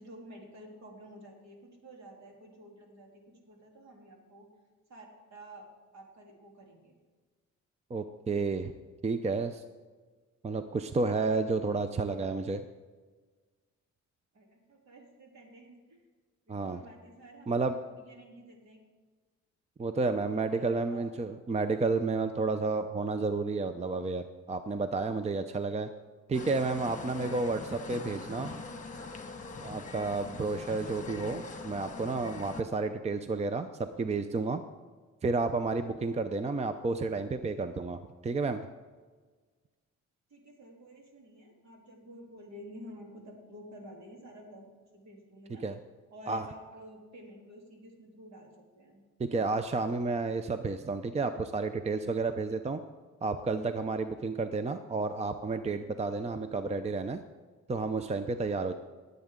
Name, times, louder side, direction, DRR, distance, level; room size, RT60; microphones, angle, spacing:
voice 1, 0.0-4.5 4.9-5.7 5.9-6.9 14.3-16.0 16.5-18.8 20.6-21.1 40.3-44.6 44.9-45.7 46.1-49.0, equal, 65° right, 0 dB, 3.3 m, -51 dB
voice 2, 7.9-8.7 9.0-9.6 10.4-12.6 16.5-16.8 17.5-17.7 19.8-25.9 26.3-28.5 29.6-34.6 35.2-38.7 45.6-45.8 46.3-46.5 49.2-52.8 53.2-57.2 57.7-58.7, right 3 dB, 20° right, 9 dB, 0.6 m, -31 dB
sound 1, 26.3-32.6, left 3 dB, 25° left, 1.4 m, -42 dB
19.0 x 8.2 x 3.7 m, 1.4 s
cardioid pair, 90°, 30 cm